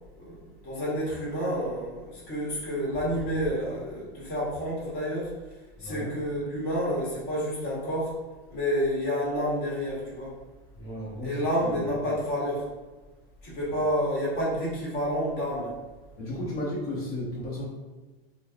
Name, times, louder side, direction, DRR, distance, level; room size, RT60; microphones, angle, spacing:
voice 1, 0.0-5.3 5.8-8.1 8.5-10.3 11.2-12.6 13.4-15.7, equal, 40° left, -6 dB, 1.4 m, -29 dB
voice 2, 5.8-6.1 10.7-12.1 13.8-13.9 16.2-17.7, left 1 dB, 75° left, -6 dB, 1.0 m, -35 dB
3.3 x 2.3 x 2.3 m, 1.2 s
supercardioid pair, 155°, 31 cm